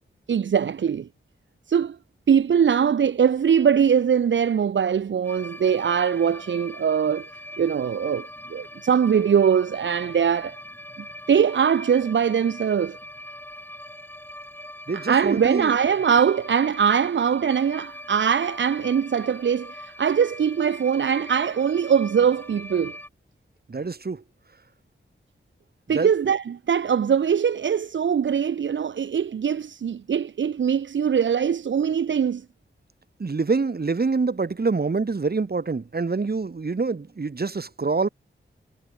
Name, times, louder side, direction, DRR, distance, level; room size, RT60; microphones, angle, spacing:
voice 1, 0.3-1.1 1.7-2.0 2.3-7.3 7.6-10.6 11.3-13.0 14.9-22.9 25.9-32.4, right 7 dB, 70° right, 0.6 m, -22 dB
sound 1, 5.2-23.1, left 1 dB, 10° left, 3.2 m, -42 dB
voice 2, 14.9-15.7 23.7-24.2 25.9-26.1 33.2-38.1, right 4 dB, 50° right, 2.4 m, -26 dB
cardioid pair, 60°, 20 cm